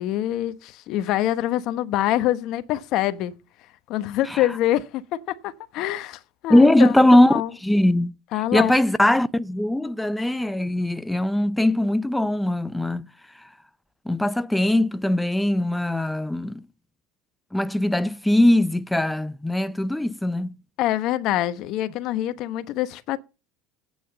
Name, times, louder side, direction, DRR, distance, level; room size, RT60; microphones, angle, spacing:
voice 1, 0.0-3.3 3.9-7.5 8.3-8.7 20.8-23.2, left 13 dB, 60° left, 1.1 m, -25 dB
voice 2, 6.5-8.1 8.5-13.1 14.1-16.6 17.5-20.6, left 1 dB, 5° left, 0.6 m, -20 dB
8.9 x 6.2 x 7.7 m
supercardioid pair, 95°, 0 cm